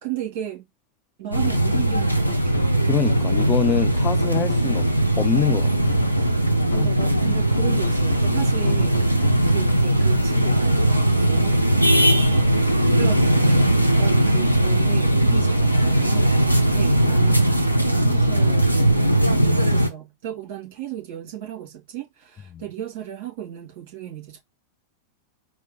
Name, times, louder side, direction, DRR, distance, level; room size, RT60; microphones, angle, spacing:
voice 1, 0.0-0.6 1.2-2.7 6.7-9.1 9.5-18.9 19.3-24.4, right 11 dB, 50° right, 2.4 m, -35 dB
sound 1, 1.3-19.9, right 1 dB, 90° right, 0.6 m, -19 dB
sound 2, 1.4-5.3 5.9-9.8, left 6 dB, 75° left, 0.8 m, -34 dB
voice 2, 2.9-4.9 5.2-5.7 6.8-6.9 22.5-22.6, left 8 dB, 25° left, 0.3 m, -25 dB
4.4 x 2.2 x 3.8 m
figure-of-eight pair, 90°, 0 cm